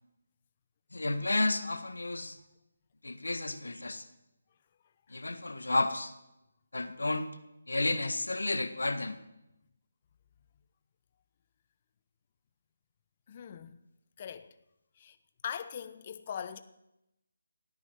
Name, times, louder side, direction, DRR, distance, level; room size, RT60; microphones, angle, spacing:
voice 1, 0.9-2.4 3.0-4.1 5.1-6.1 6.7-7.3 7.7-9.2, left 2 dB, 70° left, 1.7 m, -31 dB
voice 2, 13.3-13.8 14.2-14.6 15.0-15.2 15.4-16.6, left 8 dB, 30° left, 1.1 m, -41 dB
17.5 x 9.7 x 8.0 m
figure-of-eight pair, 150°, 0 cm